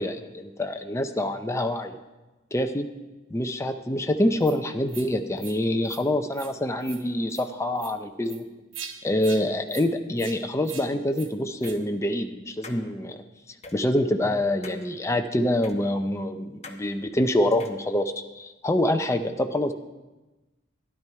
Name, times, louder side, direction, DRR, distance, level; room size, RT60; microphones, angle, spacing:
voice 1, 0.0-2.0 2.5-2.9 3.3-8.5 9.0-13.2 13.7-19.7, left 1 dB, 15° left, 6 dB, 0.6 m, -26 dB
sound 1, 4.4-4.6 4.9-5.1 5.4-5.6 5.8-6.0 6.3-6.5 6.8-7.0 7.3-7.4 7.8-7.9 8.2-8.4 8.7-8.9 9.2-9.4 9.7-9.9 10.2-10.4 10.6-10.9 11.1-11.3 11.6-11.8, right 7 dB, 70° right, 1.1 m, -41 dB
sound 2, 11.6-11.8 12.6-12.8 13.6-13.8 14.6-14.8 15.6-15.8 16.6-16.8 17.5-17.8, left 3 dB, 35° left, 1.0 m, -42 dB
13.0 x 11.0 x 4.6 m, 1.1 s
head